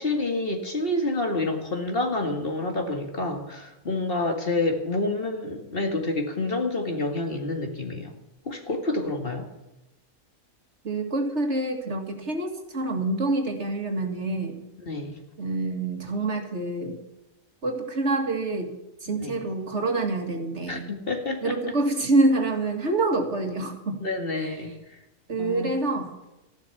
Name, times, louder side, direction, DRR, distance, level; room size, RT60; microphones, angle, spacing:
voice 1, 0.0-8.1 8.5-9.5 14.9-15.2 19.2-19.4 20.7-21.6 24.0-24.7 25.4-25.7, left 2 dB, 45° left, 4 dB, 2.1 m, -28 dB
voice 2, 10.8-14.6 15.4-17.0 17.6-18.7 19.0-20.9 21.4-24.0 24.3-24.6 25.3-26.1, right 2 dB, 55° right, 4 dB, 2.4 m, -26 dB
14.5 x 11.5 x 7.0 m, 0.98 s
omnidirectional pair, 1.4 m